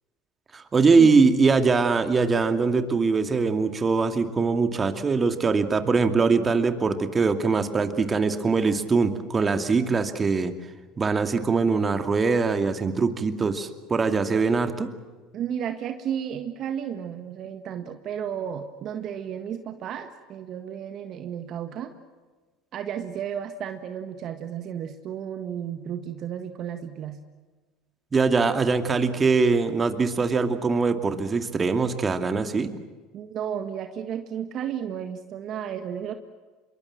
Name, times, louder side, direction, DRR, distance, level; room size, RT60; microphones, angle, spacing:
voice 1, 0.5-10.5 11.0-14.9 28.1-32.7, right 4 dB, 25° right, 8 dB, 2.5 m, -22 dB
voice 2, 15.3-21.9 22.7-27.2 33.1-36.1, right 9 dB, 50° right, 8 dB, 1.7 m, -33 dB
26.0 x 23.0 x 7.6 m, 1.3 s
hypercardioid pair, 85°, 0 cm